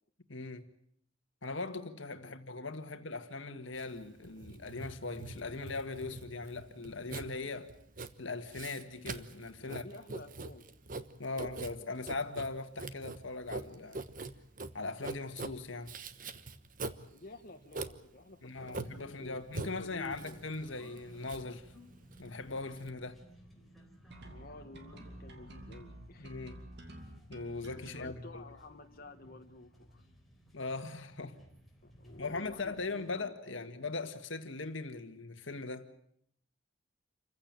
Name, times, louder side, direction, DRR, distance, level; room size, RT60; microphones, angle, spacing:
voice 1, 0.3-0.7 1.4-7.7 8.2-9.8 11.2-14.1 14.7-15.9 18.4-21.7 22.2-23.2 26.2-26.6 27.3-28.4 30.5-31.4 32.2-35.9, left 3 dB, 70° left, 1.8 m, -40 dB
Writing, 3.7-22.9, right 3 dB, 45° right, 1.1 m, -44 dB
voice 2, 9.6-10.6 17.1-20.5 24.2-26.4 27.8-30.0 31.8-33.8, left 2 dB, 45° left, 1.5 m, -52 dB
sound 1, 18.5-33.2, equal, ahead, 4.2 m, -58 dB
sound 2, 24.1-28.1, right 1 dB, 60° right, 2.8 m, -50 dB
28.0 x 15.5 x 8.9 m
head